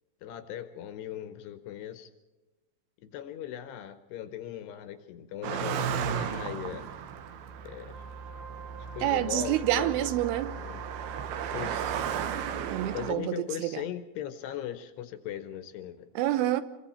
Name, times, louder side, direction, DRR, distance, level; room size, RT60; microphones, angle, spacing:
voice 1, 0.2-2.1 3.0-7.0 7.6-8.0 8.9-10.1 10.6-10.8 11.5-12.0 12.9-16.1, left 10 dB, 75° left, 2.7 m, -39 dB
Car passing by, 5.4-13.1, right 8 dB, 70° right, 2.5 m, -35 dB
Wind instrument woodwind instrument, 7.8-13.1, right 6 dB, 30° right, 1.6 m, -51 dB
voice 2, 9.0-10.6 12.7-13.8 16.2-16.6, right 13 dB, 90° right, 3.5 m, -28 dB
27.5 x 23.0 x 4.3 m
omnidirectional pair, 5.5 m